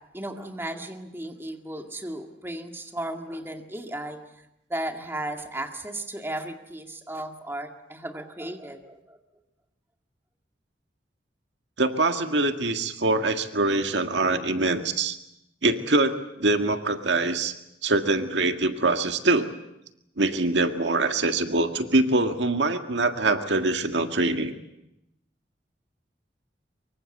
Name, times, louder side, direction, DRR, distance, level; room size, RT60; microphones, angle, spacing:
voice 1, 0.1-4.2 4.7-9.2, right 1 dB, 15° right, 4 dB, 2.0 m, -35 dB
voice 2, 11.8-15.2 15.6-17.5 17.8-19.5 20.2-24.5, right 2 dB, 80° right, 7 dB, 1.8 m, -24 dB
24.5 x 23.5 x 7.9 m, 0.85 s
head